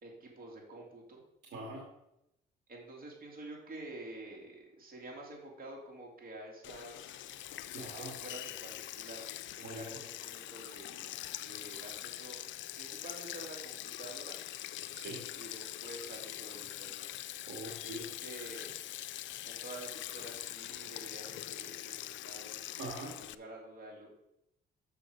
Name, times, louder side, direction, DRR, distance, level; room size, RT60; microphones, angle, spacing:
voice 1, 0.0-1.2 2.7-7.5 8.0-9.2 9.5-11.2 11.4-14.4 15.3-17.1 17.8-18.7 19.4-22.6 23.2-24.1, right 2 dB, 45° right, -2 dB, 2.8 m, -49 dB
voice 2, 1.5-1.8 7.7-8.1 9.6-9.8 14.9-15.2 17.5-18.0 22.8-23.1, right 2 dB, 65° right, -2 dB, 1.9 m, -42 dB
Sink (filling or washing), 6.6-23.3, left 13 dB, 70° left, 0.4 m, -43 dB
6.8 x 6.2 x 5.1 m, 0.84 s
cardioid pair, 90°, 20 cm